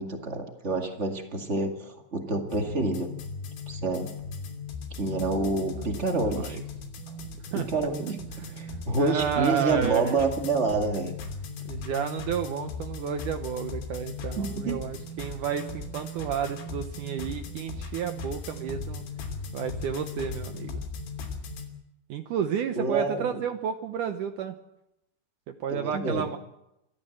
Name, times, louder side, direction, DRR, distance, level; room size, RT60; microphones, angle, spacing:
voice 1, 0.0-3.1 3.7-4.1 4.9-6.6 7.5-11.1 14.3-14.8 22.7-23.4 25.7-26.3, right 3 dB, 55° right, 3 dB, 0.7 m, -28 dB
sound 1, 2.5-21.7, left 3 dB, 85° left, 5.4 m, -38 dB
voice 2, 8.3-10.2 11.7-19.0 19.5-20.8 22.1-24.5 25.5-26.4, right 8 dB, 85° right, 6 dB, 1.8 m, -31 dB
27.5 x 14.0 x 7.8 m, 0.86 s
omnidirectional pair, 5.1 m